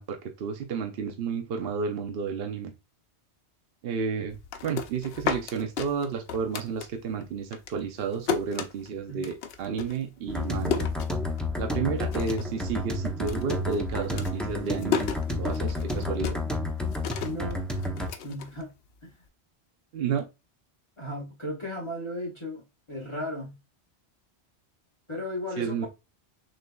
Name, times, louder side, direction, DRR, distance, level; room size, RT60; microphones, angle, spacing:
voice 1, 0.0-2.7 3.8-10.9 11.6-15.1 15.3-16.4 19.9-20.3 25.6-25.9, right 6 dB, 65° right, 0.8 m, -31 dB
sound 1, 4.3-7.2 7.5-11.7 12.0-12.6 12.9-19.1, left 7 dB, 65° left, 0.8 m, -34 dB
The Plan - Upbeat Loop, 10.3-18.1, left 2 dB, ahead, 0.4 m, -30 dB
voice 2, 17.2-17.6 18.2-18.7 19.0-19.1 21.0-23.6 25.1-25.9, left 1 dB, 25° left, 1.1 m, -35 dB
6.4 x 2.7 x 2.2 m
omnidirectional pair, 1.2 m